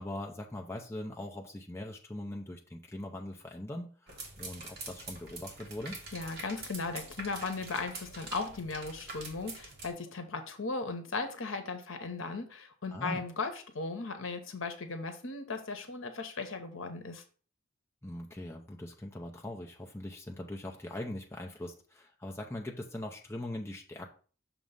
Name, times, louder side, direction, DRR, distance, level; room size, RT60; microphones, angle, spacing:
voice 1, 0.0-6.0 12.9-13.2 18.0-24.1, left 1 dB, 15° left, 1 dB, 0.6 m, -41 dB
sound 1, 4.1-9.9, right 3 dB, 50° right, 1.6 m, -45 dB
voice 2, 6.1-17.2, left 3 dB, 75° left, 7 dB, 0.9 m, -37 dB
6.3 x 3.0 x 5.3 m, 0.40 s
head